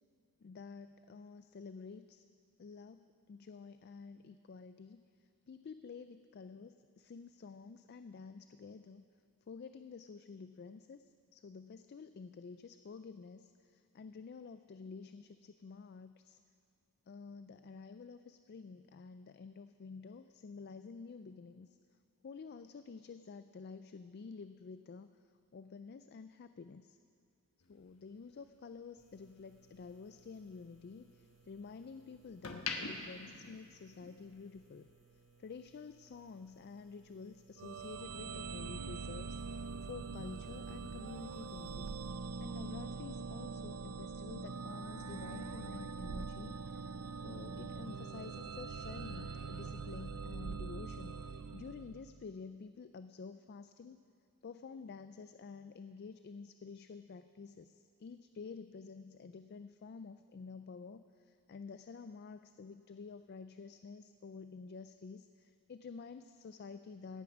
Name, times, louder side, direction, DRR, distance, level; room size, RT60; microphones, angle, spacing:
voice 1, 0.4-2.3 2.6-5.0 5.5-9.0 9.5-16.4 17.1-21.8 22.2-25.1 25.5-27.0 27.7-34.9 35.4-41.9 42.4-54.0 54.4-67.2, left 5 dB, 45° left, 10 dB, 0.3 m, -50 dB
sound 1, 27.6-29.9 30.3-31.8 32.2-34.3 34.6-34.9, left 4 dB, 65° left, 1.1 m, -45 dB
sound 2, 29.0-42.1, right 4 dB, 30° right, 1.4 m, -67 dB
sound 3, 37.6-52.3, right 4 dB, 90° right, 0.5 m, -43 dB
17.0 x 9.2 x 6.1 m, 2.4 s
head